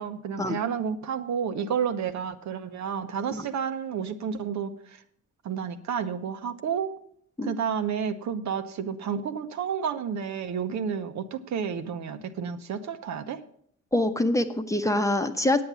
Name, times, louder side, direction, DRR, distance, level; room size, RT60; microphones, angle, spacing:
voice 1, 0.0-5.0 5.4-6.9 7.4-13.4, right 7 dB, 65° right, 8 dB, 1.0 m, -31 dB
voice 2, 13.9-15.6, left 1 dB, 10° left, 7 dB, 0.9 m, -25 dB
8.7 x 8.6 x 6.9 m, 0.65 s
cardioid pair, 90°, 30 cm